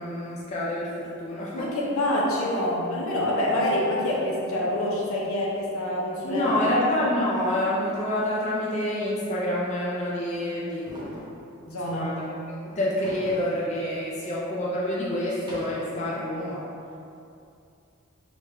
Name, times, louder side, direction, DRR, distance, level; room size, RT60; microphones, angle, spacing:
voice 1, 0.0-1.7 6.2-11.1 11.8-12.3 12.7-16.6, left 1 dB, 30° left, -6 dB, 0.4 m, -27 dB
voice 2, 1.5-6.8 11.7-12.1, left 1 dB, 75° left, -5 dB, 0.7 m, -26 dB
sound 1, 10.8-11.4 13.0-13.6 14.1-14.2 15.2-16.0, equal, 20° right, 0.7 m, -40 dB
3.4 x 2.4 x 3.2 m, 2.6 s
head